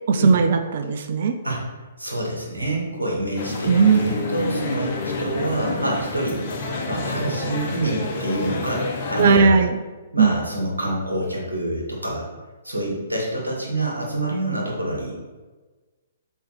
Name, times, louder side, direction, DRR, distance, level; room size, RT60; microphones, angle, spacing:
voice 1, 0.1-1.3 3.7-4.0 9.2-9.8 10.2-10.3, right 5 dB, 55° right, 7 dB, 0.6 m, -17 dB
voice 2, 2.0-6.4 6.9-9.7 10.1-12.3 12.6-15.1, right 1 dB, 85° right, -3 dB, 2.5 m, -27 dB
sound 1, 3.4-9.4, left 3 dB, 45° left, 1.3 m, -29 dB
5.5 x 4.5 x 6.3 m, 1.3 s
figure-of-eight pair, 125°, 0 cm